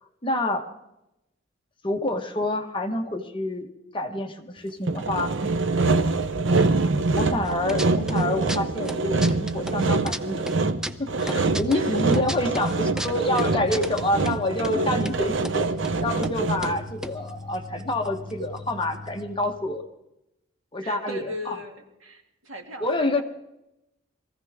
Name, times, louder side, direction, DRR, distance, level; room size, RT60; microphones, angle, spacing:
voice 1, 0.2-0.6 1.8-5.3 7.1-10.5 11.0-15.7 16.0-19.8 20.7-21.6 22.8-23.2, left 1 dB, 25° left, 4 dB, 1.3 m, -27 dB
Sawing, 4.9-16.9, right 3 dB, 65° right, 0.8 m, -25 dB
sound 1, 7.5-8.2 8.5-10.2 10.5-14.4 14.6-14.7 15.0-15.6 15.8-15.9 16.2-16.4 16.6-18.3 18.6-18.7 18.8-19.2, right 1 dB, 5° right, 0.5 m, -34 dB
sound 2, 10.1-19.9, left 3 dB, 55° left, 1.5 m, -41 dB
voice 2, 11.7-12.3 13.3-13.6 20.8-23.2, equal, 85° right, 2 dB, 2.6 m, -36 dB
22.5 x 15.5 x 3.6 m, 0.88 s
head